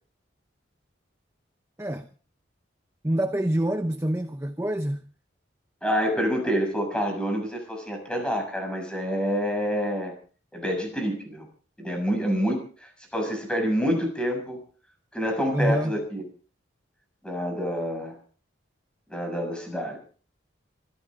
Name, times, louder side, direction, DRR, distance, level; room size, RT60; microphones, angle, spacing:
voice 1, 3.0-5.0 15.5-15.9, right 1 dB, 15° right, 0.8 m, -26 dB
voice 2, 5.8-10.1 10.5-11.5 11.8-14.6 15.1-16.2 17.2-18.2 19.1-20.0, equal, 5° left, 6.9 m, -27 dB
25.5 x 14.5 x 3.8 m
head